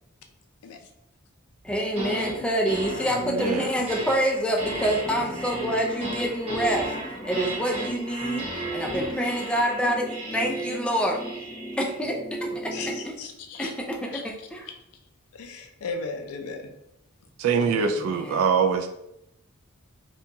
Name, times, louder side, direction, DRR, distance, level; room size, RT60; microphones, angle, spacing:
voice 1, 1.6-6.9 7.2-8.4 8.7-11.2 11.8-12.2 12.4-12.7 13.0-13.1 13.6-14.6 17.6-18.5, equal, 5° left, 0 dB, 0.3 m, -27 dB
sound 1, 1.7-2.3 2.6-13.1, right 1 dB, 30° right, 1.0 m, -34 dB
voice 2, 3.2-3.7 17.4-18.9, right 6 dB, 75° right, 7 dB, 0.3 m, -23 dB
voice 3, 12.4-13.7 14.1-14.2 14.7-14.8 15.3-16.7, left 4 dB, 80° left, 5 dB, 0.4 m, -37 dB
2.8 x 2.3 x 2.6 m, 0.82 s
head